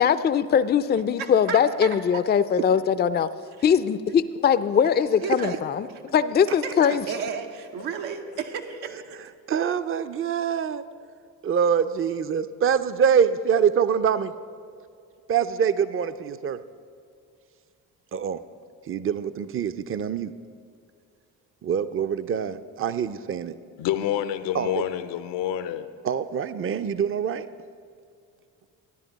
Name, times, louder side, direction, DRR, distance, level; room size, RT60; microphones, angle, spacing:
voice 1, 0.0-3.3 3.6-7.0, left 7 dB, 25° left, 14 dB, 0.4 m, -21 dB
voice 2, 1.2-1.9 3.6-3.7 5.2-5.6 5.9-6.0 6.6-9.3, right 6 dB, 80° right, 4 dB, 1.0 m, -33 dB
voice 3, 9.5-10.8 11.4-14.3 15.3-16.6 18.1-18.4 18.9-20.3 21.6-23.6 24.5-24.7 26.0-27.5, right 7 dB, 30° right, 13 dB, 0.5 m, -24 dB
voice 4, 23.8-25.9, left 10 dB, 70° left, 12 dB, 0.7 m, -27 dB
13.5 x 10.5 x 4.0 m, 2.2 s
hypercardioid pair, 45°, 45 cm